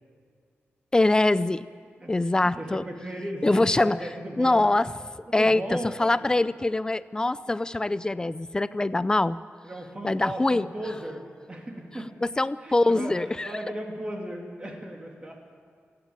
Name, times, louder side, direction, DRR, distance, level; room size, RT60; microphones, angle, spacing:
voice 1, 0.9-1.7 2.1-2.8 3.4-4.0 4.4-4.9 5.3-9.4 10.0-10.6 12.2-13.5, left 2 dB, 15° left, 16 dB, 0.5 m, -23 dB
voice 2, 2.4-4.6 5.3-6.3 9.6-12.1 12.6-15.4, right 1 dB, 20° right, 0 dB, 3.0 m, -36 dB
28.5 x 10.5 x 8.8 m, 2.3 s
wide cardioid pair, 160°, 4 cm